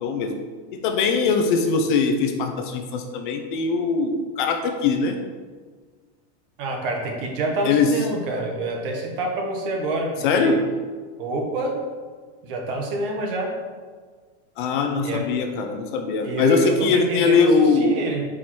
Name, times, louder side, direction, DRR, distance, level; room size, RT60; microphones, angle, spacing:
voice 1, 0.0-0.4 0.7-5.2 7.6-7.9 10.2-10.6 14.6-18.0, left 4 dB, 45° left, 5 dB, 0.6 m, -21 dB
voice 2, 6.6-10.5 11.2-11.8 12.4-13.5 15.0-15.3 16.2-17.5 17.8-18.2, right 2 dB, 55° right, 1 dB, 1.1 m, -26 dB
4.9 x 4.4 x 4.3 m, 1.5 s
supercardioid pair, 175°, 34 cm